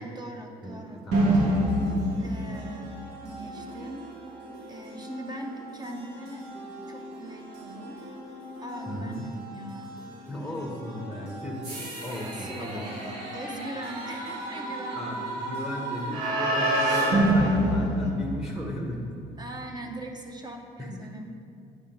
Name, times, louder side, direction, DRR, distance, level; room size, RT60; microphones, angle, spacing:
voice 1, 0.0-1.1 2.2-4.1 4.7-6.4 6.9-8.0 8.6-10.1 10.4-10.6 12.2-15.4 17.4-18.2 19.1-21.3, right 2 dB, 25° right, 3 dB, 0.9 m, -41 dB
voice 2, 0.6-2.1 8.9-9.3 10.3-11.7 12.0-12.8 14.9-19.1 20.8-21.3, left 1 dB, 5° right, 0 dB, 1.0 m, -36 dB
sound 1, 1.1-18.8, right 1 dB, 80° right, 1.8 m, -30 dB
9.3 x 3.6 x 5.8 m, 2.3 s
cardioid pair, 110°, 17 cm